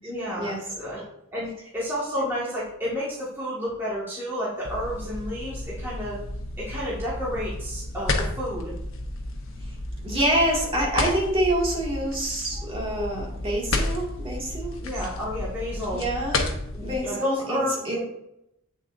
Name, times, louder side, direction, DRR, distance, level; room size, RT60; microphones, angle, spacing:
voice 1, 0.0-6.2 6.6-8.7 14.8-16.0 16.7-18.0, equal, 10° right, -9 dB, 1.8 m, -31 dB
sound 1, 4.6-16.9, left 2 dB, 75° left, 1.1 m, -32 dB
voice 2, 10.0-14.7 15.9-16.4 16.8-18.0, right 1 dB, 25° right, -4 dB, 2.2 m, -26 dB
8.3 x 7.3 x 2.6 m, 0.80 s
head